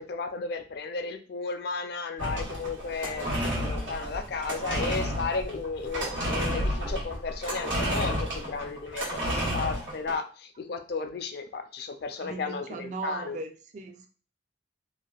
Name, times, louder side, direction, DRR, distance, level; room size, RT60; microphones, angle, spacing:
voice 1, 0.0-13.4, left 4 dB, 55° left, 0.4 m, -34 dB
sound 1, 2.2-10.1, equal, 90° right, 1.1 m, -31 dB
voice 2, 12.2-14.1, right 3 dB, 40° right, 0.4 m, -37 dB
3.3 x 2.4 x 2.3 m
head